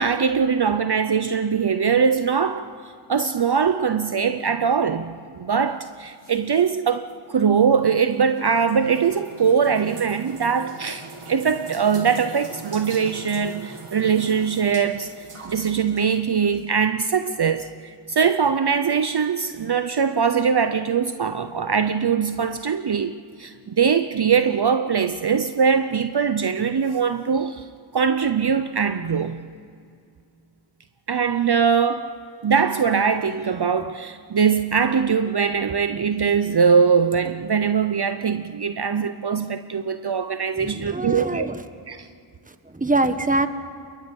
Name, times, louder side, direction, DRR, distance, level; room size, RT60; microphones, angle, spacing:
voice 1, 0.0-2.7 3.1-27.7 27.9-29.5 31.1-41.5 41.9-42.1, right 6 dB, 50° right, 0.8 m, -22 dB
sound 1, 7.1-16.7, right 3 dB, 85° right, 3.1 m, -41 dB
voice 2, 40.6-41.6 42.7-43.5, right 2 dB, 15° right, 1.2 m, -23 dB
28.0 x 23.0 x 5.4 m
wide cardioid pair, 80°, 50 cm